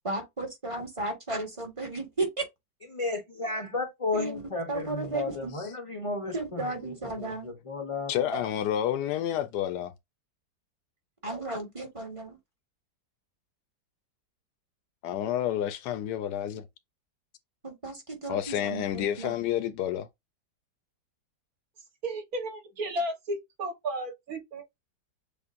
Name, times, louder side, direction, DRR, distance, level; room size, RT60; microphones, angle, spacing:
voice 1, 0.0-2.5 4.1-5.5 6.3-7.5 8.3-8.4 11.2-12.4 17.6-19.3, right 2 dB, 20° right, 1.1 m, -34 dB
voice 2, 2.9-8.1, left 3 dB, 40° left, 0.4 m, -33 dB
voice 3, 8.1-9.9 15.0-16.7 18.3-20.1, left 11 dB, 75° left, 1.1 m, -29 dB
voice 4, 22.0-24.6, right 1 dB, 60° right, 1.6 m, -33 dB
6.7 x 2.4 x 2.5 m
omnidirectional pair, 1.9 m